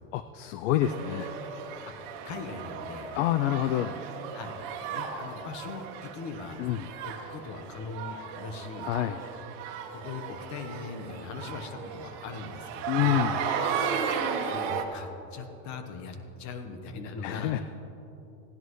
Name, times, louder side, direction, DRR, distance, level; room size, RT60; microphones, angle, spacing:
voice 1, 0.1-1.3 3.1-4.0 6.6-6.9 8.8-9.2 12.9-13.4 17.2-17.6, left 12 dB, 65° left, 11 dB, 0.5 m, -27 dB
sound 1, 0.8-14.8, right 6 dB, 60° right, 1.3 m, -35 dB
voice 2, 1.9-3.1 4.3-4.5 4.9-6.6 7.0-8.9 9.9-13.2 14.4-17.6, left 4 dB, 45° left, 7 dB, 1.2 m, -40 dB
17.0 x 10.5 x 3.2 m, 3.0 s
supercardioid pair, 125°, 41 cm